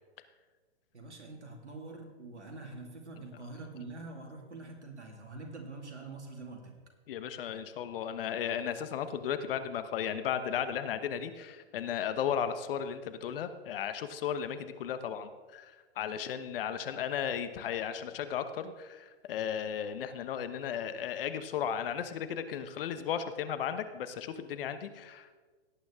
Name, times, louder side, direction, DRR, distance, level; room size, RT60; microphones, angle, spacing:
voice 1, 0.9-6.8, right 3 dB, 90° right, 2 dB, 2.4 m, -45 dB
voice 2, 7.1-25.3, left 8 dB, 55° left, 11 dB, 1.1 m, -35 dB
17.5 x 8.9 x 3.6 m, 1.4 s
hypercardioid pair, 125°, 33 cm